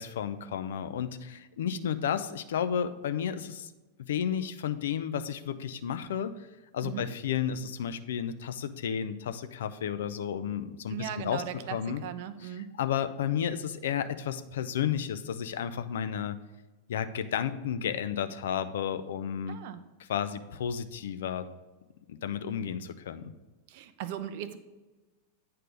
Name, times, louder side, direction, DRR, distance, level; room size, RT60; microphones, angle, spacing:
voice 1, 0.0-3.7 4.0-6.5 6.7-11.4 11.7-12.0 12.4-16.4 16.9-19.6 20.0-21.5 22.1-23.3, left 8 dB, 60° left, 11 dB, 0.4 m, -32 dB
voice 2, 10.9-12.7 19.5-19.8 23.7-24.6, right 10 dB, 50° right, 12 dB, 0.5 m, -38 dB
8.7 x 3.3 x 5.2 m, 1.2 s
figure-of-eight pair, 90°, 0 cm